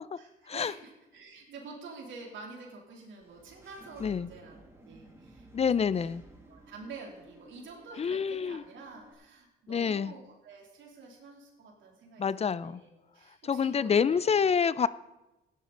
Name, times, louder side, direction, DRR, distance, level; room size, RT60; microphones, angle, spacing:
voice 1, 0.2-4.6 4.8-6.0 6.5-14.2 14.6-14.7, right 4 dB, 75° right, -1 dB, 3.2 m, -48 dB
Engine / Mechanisms, 3.2-9.1, right 1 dB, 15° right, 2.4 m, -54 dB
voice 2, 5.5-6.2 8.0-8.6 9.7-10.1 12.2-12.8 13.4-14.9, left 6 dB, 30° left, 18 dB, 0.4 m, -27 dB
16.0 x 10.0 x 3.9 m, 0.99 s
cardioid pair, 90°, 20 cm